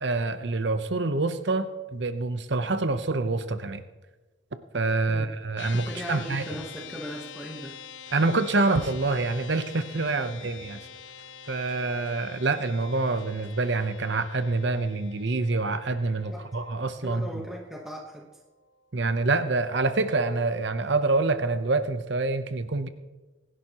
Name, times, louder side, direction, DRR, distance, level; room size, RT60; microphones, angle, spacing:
voice 1, 0.0-3.8 4.7-6.4 8.1-10.9 11.5-17.4 18.9-22.9, right 3 dB, 60° right, 10 dB, 0.8 m, -26 dB
sound 1, 5.6-19.1, left 7 dB, 65° left, 0.6 m, -46 dB
voice 2, 5.7-7.8 16.3-16.5 17.0-18.4, equal, ahead, -1 dB, 1.1 m, -38 dB
sound 2, 5.7-13.7, left 1 dB, 40° right, 4.3 m, -56 dB
25.0 x 11.0 x 3.0 m, 1.2 s
head